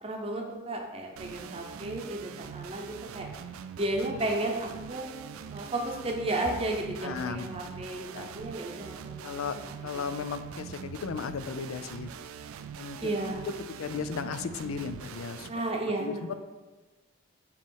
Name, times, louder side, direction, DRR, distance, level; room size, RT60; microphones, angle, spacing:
voice 1, 0.0-3.3 3.8-5.1 5.5-10.0 13.0-13.4 15.5-16.3, right 2 dB, 30° right, 2 dB, 0.7 m, -33 dB
sound 1, 1.2-15.5, right 7 dB, 85° right, 0.3 m, -43 dB
voice 2, 7.0-7.5 8.1-8.3 9.2-9.6 9.8-12.1 12.8-13.1 13.8-15.5 16.0-16.3, left 6 dB, 85° left, 12 dB, 0.4 m, -35 dB
7.0 x 3.1 x 4.6 m, 1.2 s
head